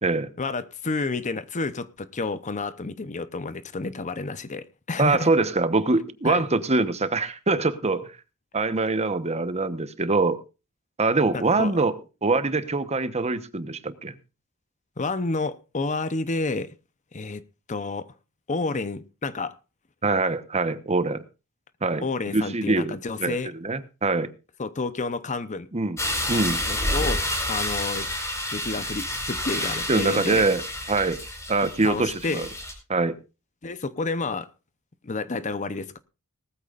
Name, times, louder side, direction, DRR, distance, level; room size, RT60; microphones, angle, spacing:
voice 1, 0.4-5.3 6.2-6.5 11.3-11.7 15.0-16.7 17.1-17.4 17.7-18.1 18.5-19.6 22.0-23.5 24.6-25.7 26.7-28.1 28.5-30.4 31.8-32.5 33.6-34.5 35.0-36.0, left 3 dB, 35° left, 0.7 m, -30 dB
voice 2, 5.0-8.1 8.5-10.4 11.0-11.9 12.2-14.1 20.0-21.2 21.8-22.0 22.3-22.9 23.2-24.3 25.7-26.0 26.3-26.6 29.9-30.6 30.9-31.2 31.5-32.5 32.9-33.1, right 3 dB, 30° right, 1.0 m, -24 dB
sound 1, 26.0-32.7, left 1 dB, 15° left, 4.7 m, -29 dB
19.5 x 14.0 x 2.5 m
head